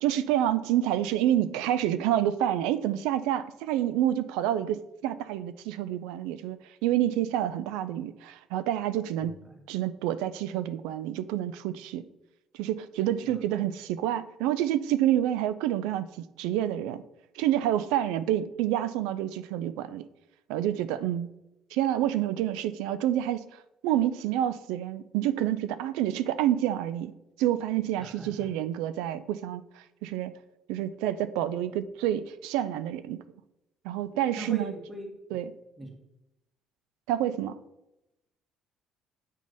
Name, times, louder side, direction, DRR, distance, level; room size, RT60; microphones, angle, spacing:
voice 1, 0.0-6.6 6.8-9.3 9.7-12.0 12.5-17.0 17.3-20.0 20.5-21.3 21.7-23.5 23.8-27.1 27.4-29.6 30.0-30.3 30.7-33.2 33.8-34.7 35.3-35.5 37.1-37.6, right 12 dB, 90° right, 14 dB, 0.4 m, -28 dB
voice 2, 9.2-9.6 13.2-13.4 28.0-28.5 34.4-35.4 35.8-36.0, right 1 dB, 20° right, 2 dB, 1.6 m, -41 dB
8.2 x 3.1 x 5.3 m, 0.91 s
cardioid pair, 95°, 0 cm